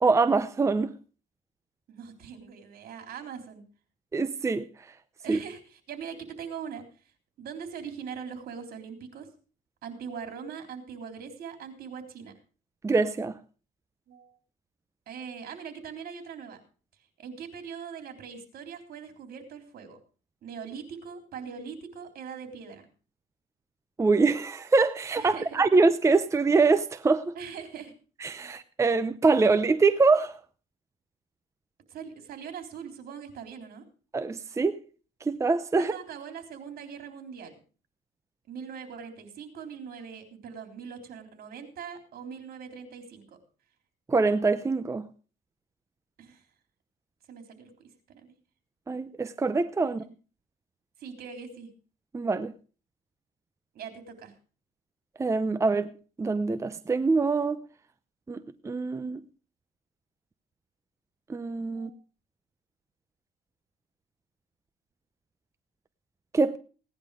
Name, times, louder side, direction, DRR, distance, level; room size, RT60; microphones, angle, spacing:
voice 1, 0.0-0.9 4.1-4.6 5.3-5.4 12.8-13.3 24.0-27.3 28.2-30.4 34.1-34.8 35.3-35.9 44.1-45.1 48.9-50.0 52.1-52.5 55.2-55.9 56.2-57.6 58.3-58.4 58.6-59.2 61.3-61.9 66.3-66.6, right 3 dB, 15° right, 0.6 m, -24 dB
voice 2, 1.9-3.6 5.2-6.8 7.4-9.3 9.8-12.3 14.1-14.4 15.1-16.6 17.2-20.0 20.4-22.9 25.2-25.7 27.4-27.9 28.4-28.6 31.9-33.8 35.7-37.5 38.5-43.4 46.2-46.4 47.3-47.7 48.1-48.3 49.8-50.1 51.0-51.7 53.7-54.3 61.7-61.9, right 6 dB, 60° right, 3.7 m, -41 dB
17.5 x 10.5 x 4.9 m
cardioid pair, 110°, 17 cm